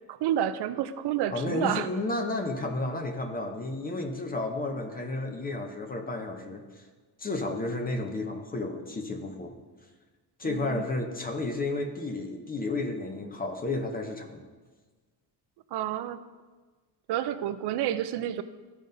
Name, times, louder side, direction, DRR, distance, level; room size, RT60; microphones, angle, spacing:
voice 1, 0.1-1.9 10.4-10.8 15.7-16.2 17.1-18.4, right 11 dB, 70° right, 11 dB, 0.5 m, -29 dB
voice 2, 1.3-6.8 7.2-9.6 10.4-14.5, left 2 dB, 20° left, 4 dB, 0.6 m, -32 dB
14.0 x 5.2 x 2.6 m, 1.4 s
cardioid pair, 175°, 43 cm